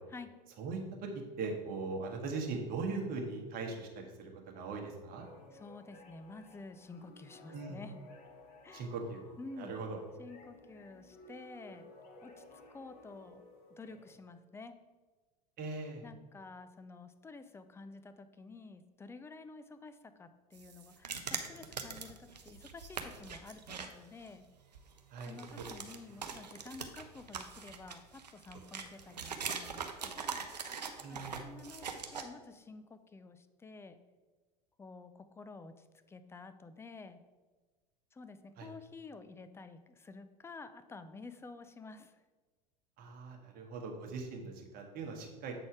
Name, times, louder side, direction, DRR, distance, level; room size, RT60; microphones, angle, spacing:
voice 1, 0.6-5.2 7.5-7.8 8.7-9.2 9.6-10.0 15.6-16.0 25.1-25.7 31.0-31.4 38.6-38.7 43.0-45.5, right 4 dB, 45° right, 1 dB, 1.5 m, -40 dB
sound 1, 5.2-14.1, left 1 dB, 50° left, 1.4 m, -56 dB
voice 2, 5.5-8.0 8.6-8.9 9.4-9.7 10.2-11.9 12.2-12.4 12.7-13.4 13.8-14.7 16.0-24.4 25.2-30.4 31.1-34.0 34.8-37.2 38.1-42.2, left 3 dB, 10° left, 11 dB, 0.5 m, -50 dB
sound 2, 20.5-23.9 24.2-24.3 24.7-32.2, right 6 dB, 85° right, 0.6 m, -42 dB
7.7 x 4.2 x 4.7 m, 1.3 s
figure-of-eight pair, 75°, 21 cm